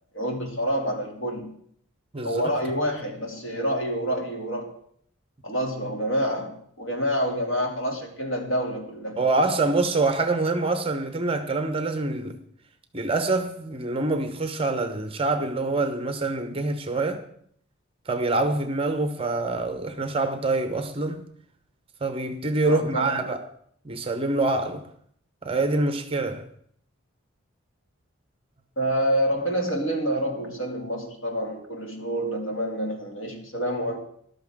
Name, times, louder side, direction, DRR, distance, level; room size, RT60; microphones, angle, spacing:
voice 1, 0.1-1.6 2.2-4.7 5.4-9.2 22.6-23.2 28.8-34.0, equal, 65° left, 2.6 m, -27 dB
voice 2, 9.2-12.4 12.9-17.2 18.1-21.2 22.0-23.4 23.8-24.9 25.4-26.5, right 2 dB, 25° right, 0.9 m, -25 dB
13.0 x 12.0 x 3.7 m
head